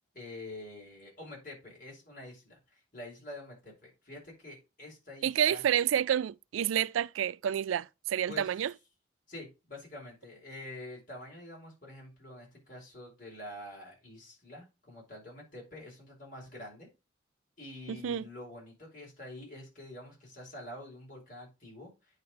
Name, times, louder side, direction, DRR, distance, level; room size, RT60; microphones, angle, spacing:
voice 1, 0.1-5.6 8.3-8.5 9.3-16.9 17.6-22.2, left 1 dB, 45° left, 5.5 m, -47 dB
voice 2, 5.2-8.7 17.9-18.2, right 9 dB, 85° right, 0.3 m, -29 dB
9.4 x 4.3 x 5.2 m
head